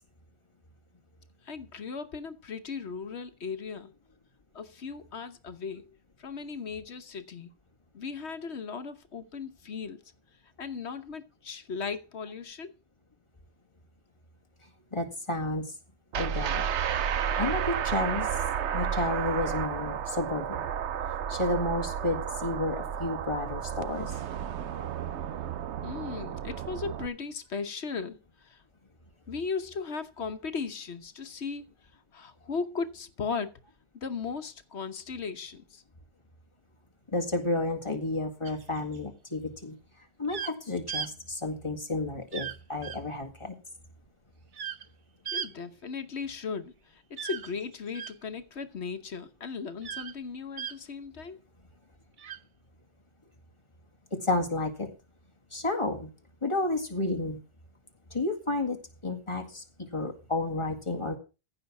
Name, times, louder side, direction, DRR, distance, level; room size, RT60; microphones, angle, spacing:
voice 1, 1.4-3.9 4.5-7.5 7.9-10.0 10.6-12.7 25.8-28.6 29.3-31.6 32.1-33.5 33.9-35.8 45.3-51.4, left 5 dB, 75° left, 1.3 m, -37 dB
voice 2, 14.9-15.7 16.2-16.6 17.4-18.3 18.7-20.7 21.3-24.1 37.1-39.8 40.2-43.6 54.1-54.9 55.5-56.1 56.4-57.4 58.1-58.8 59.0-61.2, left 2 dB, 25° left, 2.1 m, -31 dB
sound 1, 16.1-27.1, right 8 dB, 85° right, 1.0 m, -32 dB
sound 2, 38.5-39.0 40.3-40.5 40.9-41.1 42.3-42.6 42.8-43.0 44.5-44.9 45.3-45.5 47.2-48.1 49.8-50.1 50.6-50.7 52.2-52.4, right 8 dB, 50° right, 0.8 m, -36 dB
15.0 x 5.7 x 6.0 m
omnidirectional pair, 1.1 m